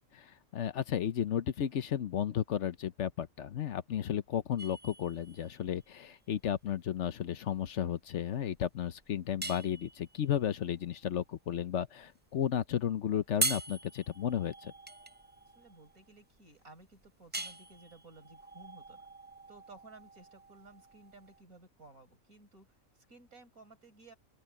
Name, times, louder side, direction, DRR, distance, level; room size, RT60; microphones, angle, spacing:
voice 1, 0.1-14.7, left 9 dB, 60° left, 1.0 m, -33 dB
sound 1, 4.6-21.4, right 2 dB, 15° right, 0.4 m, -42 dB
voice 2, 15.5-19.0 19.5-24.2, right 3 dB, 90° right, 6.0 m, -56 dB
open air
omnidirectional pair, 1.4 m